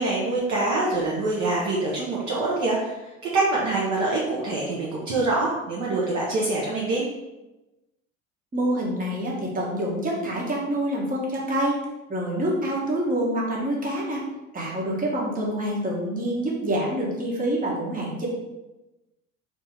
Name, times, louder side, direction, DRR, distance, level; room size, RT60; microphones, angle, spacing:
voice 1, 0.0-7.1, right 2 dB, 45° right, -5 dB, 1.1 m, -25 dB
voice 2, 8.5-11.8 12.1-14.2 14.5-18.3, right 1 dB, 20° right, -4 dB, 1.5 m, -26 dB
4.1 x 2.9 x 3.7 m, 1.0 s
figure-of-eight pair, 65°, 41 cm